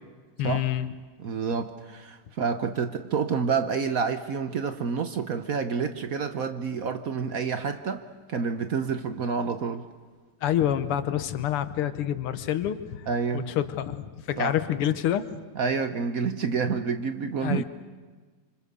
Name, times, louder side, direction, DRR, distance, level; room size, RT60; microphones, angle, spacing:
voice 1, 0.4-0.9 10.4-13.1 13.3-15.4 17.4-17.6, left 11 dB, 85° left, 11 dB, 1.9 m, -27 dB
voice 2, 1.2-9.8 13.1-13.5 14.4-14.5 15.5-17.6, right 5 dB, 55° right, 9 dB, 1.0 m, -28 dB
26.5 x 25.5 x 6.8 m, 1.4 s
omnidirectional pair, 2.4 m